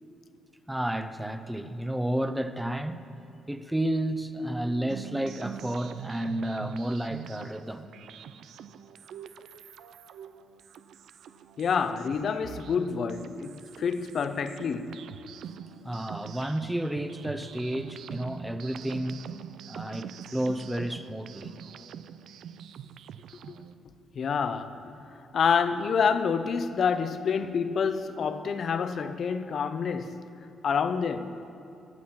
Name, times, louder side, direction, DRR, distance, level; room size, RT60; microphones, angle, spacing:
voice 1, 0.7-3.0 3.5-7.9 15.8-19.3 19.7-21.6, right 1 dB, 5° right, 0.7 m, -31 dB
sound 1, 4.9-23.8, right 8 dB, 75° right, 0.4 m, -44 dB
voice 2, 11.6-15.0 24.1-24.9 25.3-30.2 30.6-31.3, left 6 dB, 55° left, 0.7 m, -28 dB
21.5 x 7.4 x 5.8 m
cardioid pair, 90°, 0 cm